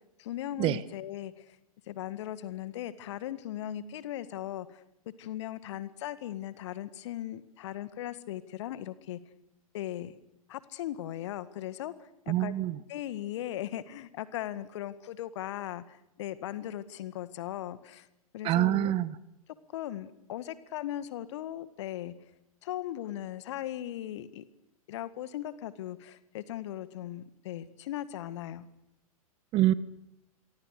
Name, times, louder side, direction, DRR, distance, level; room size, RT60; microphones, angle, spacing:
voice 1, 0.2-1.6 1.9-4.8 5.2-9.2 9.7-10.1 10.5-12.5 12.9-18.1 18.3-18.9 19.7-22.1 22.6-24.5 24.9-28.7, left 12 dB, 50° left, 14 dB, 1.8 m, -38 dB
voice 2, 12.3-12.8 18.4-19.1 29.5-29.7, right 14 dB, 30° right, 18 dB, 1.2 m, -25 dB
27.5 x 23.5 x 6.7 m, 0.87 s
figure-of-eight pair, 105°, 19 cm